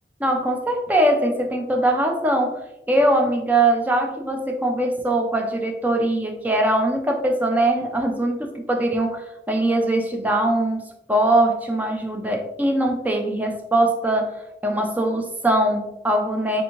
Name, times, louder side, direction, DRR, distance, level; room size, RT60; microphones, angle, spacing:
voice 1, 0.2-2.6 2.9-10.8 11.1-16.6, right 1 dB, 10° right, 2 dB, 0.4 m, -21 dB
3.4 x 2.7 x 2.8 m, 0.92 s
head